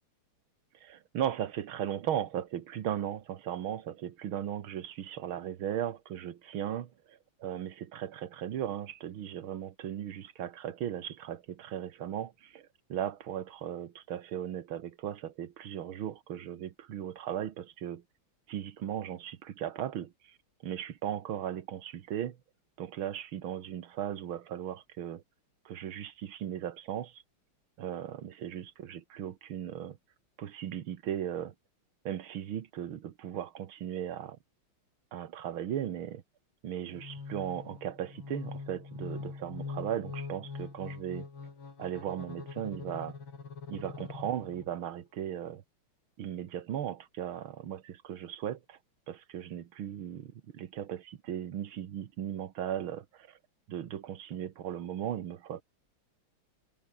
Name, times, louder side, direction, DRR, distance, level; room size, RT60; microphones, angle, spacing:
voice 1, 0.8-18.0 18.5-20.4 20.6-22.4 22.8-25.2 25.7-27.2 27.8-30.0 30.4-31.5 32.1-34.4 35.1-36.2 36.6-41.3 41.8-43.2 43.7-45.6 46.2-48.8 49.1-53.4 53.7-55.6, right 10 dB, 75° right, 2.1 m, -37 dB
sound 1, 36.9-44.9, left 4 dB, 70° left, 4.4 m, -43 dB
omnidirectional pair, 2.3 m